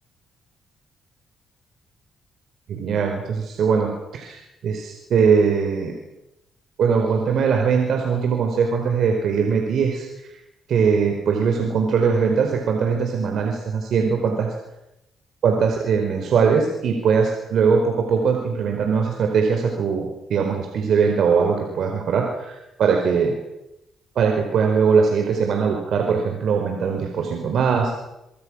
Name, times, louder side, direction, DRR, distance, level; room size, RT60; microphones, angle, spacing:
voice 1, 2.7-4.4 4.6-5.9 6.8-10.1 10.7-14.5 15.4-23.4 24.1-27.9, right 6 dB, 65° right, 3 dB, 4.8 m, -21 dB
25.5 x 24.5 x 6.4 m, 0.89 s
cardioid pair, 90°, 0 cm